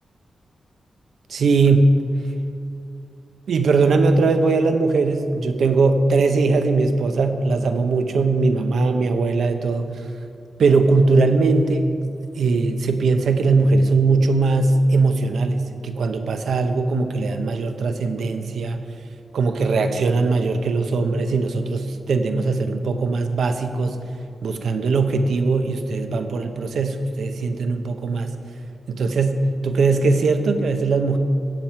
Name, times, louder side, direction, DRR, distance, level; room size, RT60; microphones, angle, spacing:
voice 1, 1.3-2.0 3.5-9.9 10.6-11.9 12.3-18.8 19.3-24.0 24.4-28.3 28.9-31.2, right 3 dB, 85° right, 7 dB, 0.8 m, -20 dB
16.0 x 7.3 x 4.6 m, 2.5 s
wide cardioid pair, 100°, 0 cm